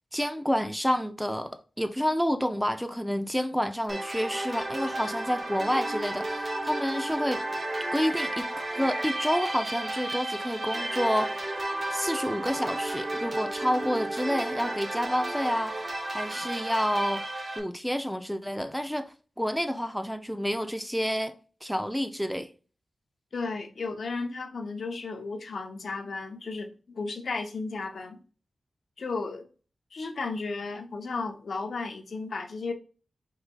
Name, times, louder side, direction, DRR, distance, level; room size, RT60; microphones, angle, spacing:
voice 1, 0.1-7.4 7.9-8.5 8.7-11.7 11.9-17.3 17.6-22.5, equal, ahead, 0.4 m, -29 dB
sound 1, 3.9-17.6, right 1 dB, 45° right, 0.9 m, -33 dB
voice 2, 23.3-28.2 29.0-29.5 29.9-32.7, left 3 dB, 75° left, 0.6 m, -34 dB
4.6 x 3.9 x 2.3 m
cardioid pair, 60°, 0 cm